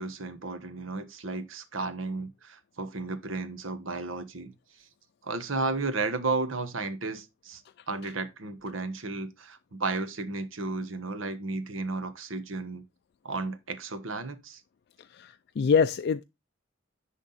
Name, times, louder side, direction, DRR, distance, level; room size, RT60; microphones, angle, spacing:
voice 1, 0.0-4.5 5.2-7.6 7.9-12.8 13.2-14.6, right 3 dB, 90° right, 1.2 m, -33 dB
voice 2, 15.0-16.2, left 6 dB, 55° left, 0.3 m, -26 dB
10.5 x 3.6 x 4.1 m
head